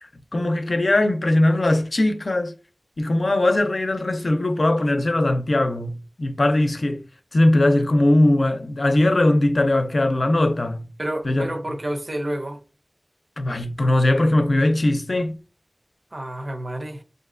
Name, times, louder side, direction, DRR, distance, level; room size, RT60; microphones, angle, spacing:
voice 1, 0.3-2.5 3.0-5.9 6.2-7.0 7.3-10.8 11.2-11.5 13.4-15.4, left 1 dB, 85° left, 0.5 m, -20 dB
voice 2, 11.0-12.6 16.1-17.0, right 1 dB, 65° right, 0.6 m, -29 dB
6.5 x 2.5 x 2.4 m
wide cardioid pair, 45°, 0 cm